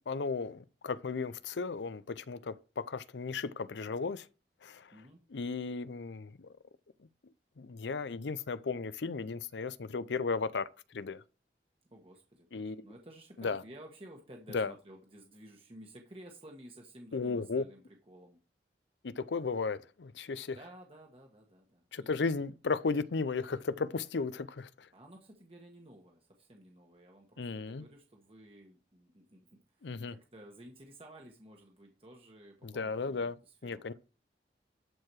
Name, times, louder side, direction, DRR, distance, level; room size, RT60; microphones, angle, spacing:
voice 1, 0.1-4.3 4.6-4.9 5.3-6.5 7.0-11.2 12.5-12.9 13.4-13.6 14.5-14.7 17.1-17.6 19.0-20.6 21.9-24.9 27.4-27.8 29.8-30.1 32.6-33.4 33.6-33.9, left 4 dB, 85° left, 0.6 m, -35 dB
voice 2, 11.9-18.4 20.5-22.3 24.9-33.8, right 1 dB, 30° right, 1.4 m, -54 dB
12.0 x 4.7 x 4.7 m
head